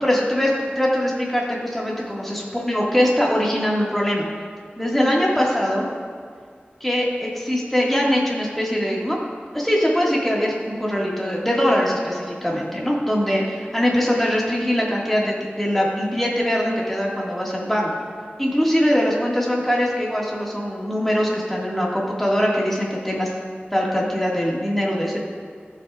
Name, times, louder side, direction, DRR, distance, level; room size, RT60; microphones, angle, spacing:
voice 1, 0.0-4.3 4.8-5.9 6.8-9.2 9.5-17.9 18.4-23.3 23.7-25.2, equal, 5° left, -4 dB, 1.9 m, -22 dB
16.0 x 5.8 x 2.4 m, 2.1 s
wide cardioid pair, 45°, 4 cm